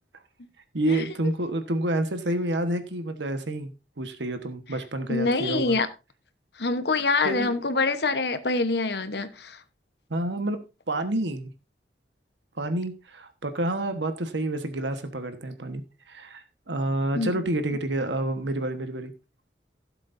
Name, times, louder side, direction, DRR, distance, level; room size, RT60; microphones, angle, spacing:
voice 1, 0.7-5.8 7.2-7.6 10.1-10.6 10.9-11.5 12.6-15.8 16.1-19.1, right 1 dB, 80° right, 1.3 m, -29 dB
voice 2, 5.1-5.9 6.6-9.6 17.1-17.4, left 3 dB, 70° left, 1.0 m, -25 dB
16.5 x 7.5 x 2.6 m
head